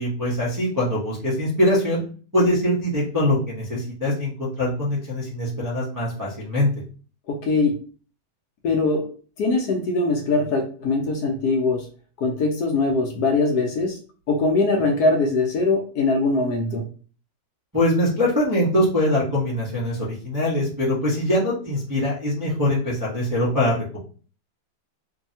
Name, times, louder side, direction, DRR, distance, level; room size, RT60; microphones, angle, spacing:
voice 1, 0.0-2.0 2.3-6.7 17.7-24.0, left 1 dB, 25° right, -8 dB, 0.4 m, -23 dB
voice 2, 7.3-7.7 8.6-9.1 9.4-11.8 12.2-14.0 14.3-16.8, left 3 dB, 70° left, 2 dB, 1.0 m, -22 dB
2.7 x 2.7 x 2.6 m, 0.40 s
omnidirectional pair, 1.9 m